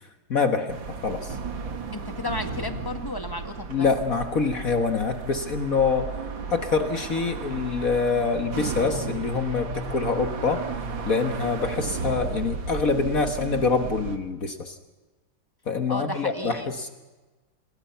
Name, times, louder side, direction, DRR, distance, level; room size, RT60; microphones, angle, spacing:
voice 1, 0.3-1.4 3.7-6.1 6.5-10.7 11.0-14.7 15.7-16.9, left 4 dB, 45° left, 7 dB, 1.7 m, -25 dB
sound 1, 0.7-14.2, right 4 dB, 70° right, 2.6 m, -34 dB
voice 2, 1.9-3.9 15.9-16.7, left 2 dB, 10° left, 7 dB, 1.5 m, -33 dB
27.5 x 21.0 x 5.7 m, 1.2 s
omnidirectional pair, 2.2 m